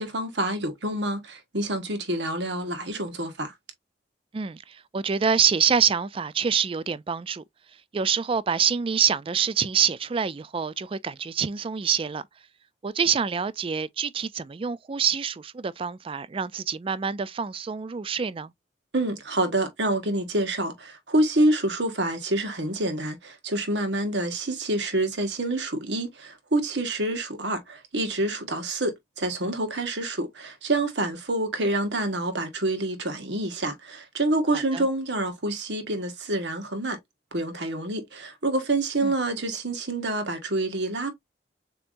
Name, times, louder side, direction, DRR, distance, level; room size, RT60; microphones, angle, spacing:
voice 1, 0.0-3.5 18.9-37.0 37.3-41.1, right 1 dB, 80° right, 1.5 m, -27 dB
voice 2, 4.3-7.4 7.9-12.2 12.8-18.5 34.5-34.9 39.0-39.1, right 7 dB, 30° right, 0.4 m, -26 dB
6.9 x 2.9 x 2.6 m
head